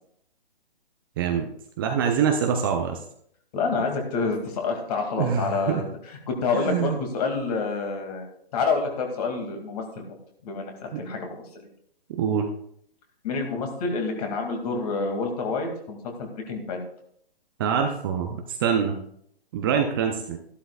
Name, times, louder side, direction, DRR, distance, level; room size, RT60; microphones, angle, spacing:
voice 1, 1.2-1.5 1.8-3.0 5.2-5.8 6.5-7.0 10.9-11.0 12.2-12.5 17.6-19.0 19.5-20.4, right 7 dB, 20° right, 4 dB, 0.6 m, -25 dB
voice 2, 3.5-10.0 10.4-11.5 13.2-16.8, left 4 dB, 40° left, 3 dB, 2.4 m, -28 dB
13.5 x 11.5 x 2.4 m, 0.68 s
hypercardioid pair, 145°, 31 cm